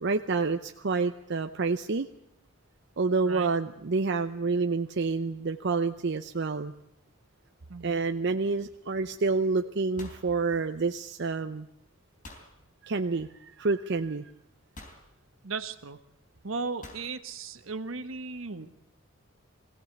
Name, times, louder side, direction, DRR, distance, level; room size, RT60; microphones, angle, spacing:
voice 1, 0.0-2.1 3.0-6.7 7.8-11.7 12.8-14.3, right 4 dB, 60° right, 7 dB, 0.7 m, -28 dB
voice 2, 7.7-8.0 15.4-16.0 16.4-18.7, right 4 dB, 80° right, 10 dB, 1.4 m, -36 dB
sound 1, 9.7-11.2 12.2-12.6 13.7-13.8 14.8-15.1 16.8-17.1, left 2 dB, 40° left, 3.9 m, -48 dB
21.5 x 16.5 x 8.2 m, 0.81 s
head